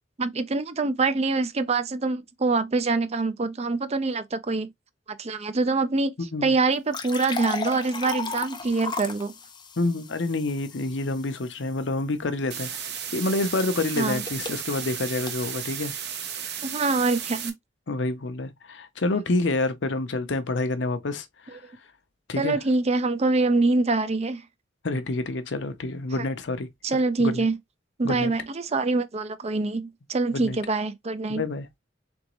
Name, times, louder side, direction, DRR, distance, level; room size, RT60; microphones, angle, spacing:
voice 1, 0.2-4.7 5.2-9.3 14.0-14.2 16.6-17.6 22.4-24.4 26.1-26.3 26.8-27.6 28.0-31.4, right 3 dB, 35° right, 0.5 m, -25 dB
voice 2, 6.2-6.5 9.8-12.7 13.1-15.9 17.9-21.6 22.3-22.6 24.8-26.7 27.2-27.5 28.0-28.3 30.3-30.6 31.3-31.7, left 2 dB, 70° left, 0.7 m, -28 dB
sound 1, 6.7-11.8 13.3-15.4, left 4 dB, 25° left, 0.6 m, -36 dB
sound 2, 12.5-17.5, right 8 dB, 60° right, 0.9 m, -34 dB
4.0 x 3.6 x 3.0 m
head